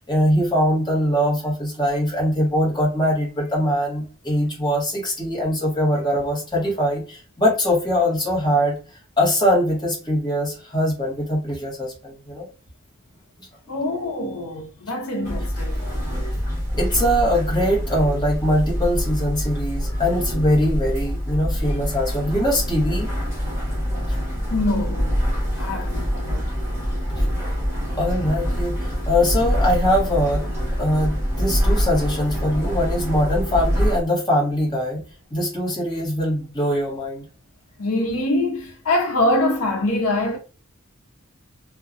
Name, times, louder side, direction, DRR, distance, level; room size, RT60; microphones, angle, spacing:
voice 1, 0.0-8.8 9.2-12.5 15.8-16.2 16.8-23.1 27.1-27.3 28.0-30.4 30.8-35.0 35.3-37.2, equal, 20° left, 1.0 m, -22 dB
voice 2, 13.7-15.8 24.5-25.1 25.6-26.4 37.8-40.4, left 1 dB, 85° left, 0.6 m, -24 dB
sound 1, 15.2-34.0, equal, 15° right, 1.1 m, -25 dB
2.6 x 2.2 x 2.4 m
head